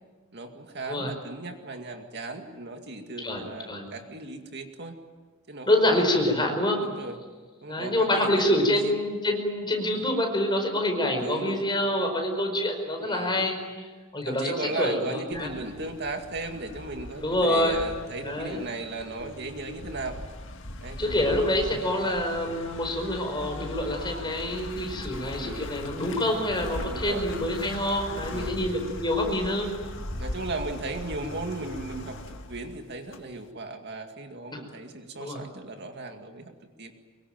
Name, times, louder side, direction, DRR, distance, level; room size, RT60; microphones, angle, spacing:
voice 1, 0.3-5.0 5.5-6.1 6.7-7.2 7.6-8.5 8.8-8.9 9.9-10.1 11.2-11.7 13.0-13.4 14.2-20.2 20.8-22.2 25.3-25.7 26.9-27.3 28.3-28.8 30.2-36.5 36.8-36.9, right 2 dB, 50° right, 4 dB, 2.3 m, -36 dB
voice 2, 3.2-3.9 5.7-6.8 7.7-15.5 17.2-17.8 18.2-18.6 21.0-29.7 34.5-34.6 35.2-35.4, left 1 dB, 20° left, 3 dB, 5.1 m, -26 dB
sound 1, 15.3-33.5, left 1 dB, 60° left, 1.8 m, -39 dB
25.0 x 23.0 x 9.2 m, 1.4 s
head